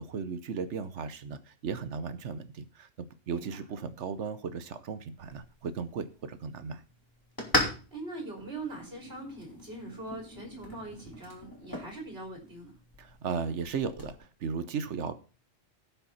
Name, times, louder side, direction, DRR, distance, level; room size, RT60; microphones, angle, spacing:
voice 1, 0.0-6.8 13.0-15.2, right 5 dB, 65° right, 11 dB, 1.1 m, -36 dB
sound 1, 5.2-14.2, left 1 dB, 15° left, 2.8 m, -38 dB
voice 2, 7.6-12.8, right 2 dB, 50° right, 0 dB, 3.7 m, -42 dB
17.0 x 5.7 x 4.1 m, 0.35 s
omnidirectional pair, 1.3 m